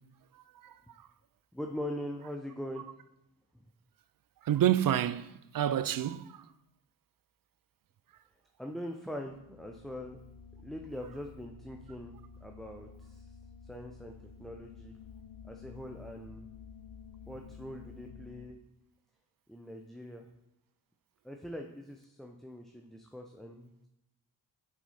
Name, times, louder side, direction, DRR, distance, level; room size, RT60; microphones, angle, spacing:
voice 1, 1.5-2.9 8.6-10.2 10.6-13.3 13.7-14.1 14.4-15.0 15.4-16.5 17.3-18.6 19.5-20.3 21.2-23.9, equal, ahead, 0.7 m, -42 dB
voice 2, 4.4-6.4, right 11 dB, 45° right, 0.5 m, -28 dB
sound 1, 9.2-18.5, left 6 dB, 75° left, 1.0 m, -51 dB
7.2 x 4.6 x 4.2 m
supercardioid pair, 45°, 47 cm